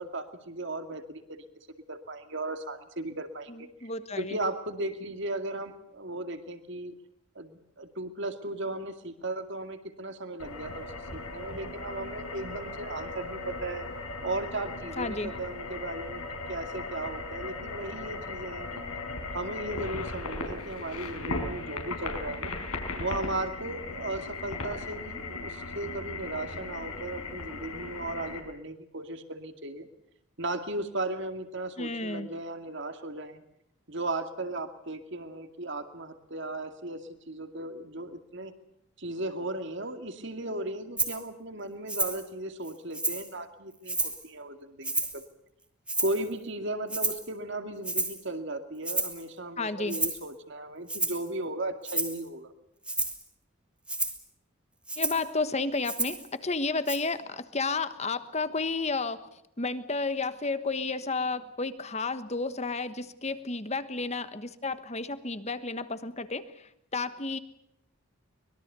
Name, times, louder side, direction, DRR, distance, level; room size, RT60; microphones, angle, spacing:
voice 1, 0.0-1.5 1.9-3.9 4.2-6.9 7.4-10.9 11.1-13.9 14.2-16.2 16.5-18.9 19.3-22.5 23.0-29.9 30.4-33.4 33.9-38.5 39.0-45.2 46.0-52.5, right 2 dB, 55° right, 8 dB, 2.3 m, -36 dB
voice 2, 3.5-4.4 15.0-15.3 31.8-32.3 49.6-50.0 55.0-59.2 59.6-67.4, left 3 dB, 30° left, 12 dB, 1.3 m, -32 dB
sound 1, 10.4-28.4, left 3 dB, 85° left, 4.6 m, -37 dB
Rattle (instrument), 41.0-41.2 41.9-42.2 42.6-43.3 43.9-44.2 44.8-45.2 45.9-46.3 46.9-47.3 47.8-48.2 48.8-49.2 49.9-50.2 50.9-51.3 51.8-52.2 52.8-53.2 53.9-54.2 54.9-55.3 55.8-56.3 56.9-57.0, right 2 dB, 5° right, 1.8 m, -31 dB
24.0 x 22.0 x 6.9 m, 0.77 s
head